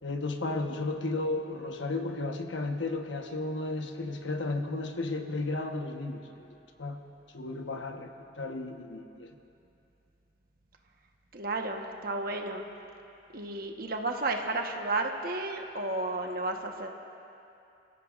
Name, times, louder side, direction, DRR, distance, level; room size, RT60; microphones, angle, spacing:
voice 1, 0.0-7.0 7.3-9.3, left 2 dB, 90° left, 4 dB, 1.2 m, -34 dB
voice 2, 11.3-12.6 13.3-16.9, right 2 dB, 50° right, 3 dB, 1.2 m, -32 dB
29.5 x 16.5 x 2.5 m, 2.7 s
head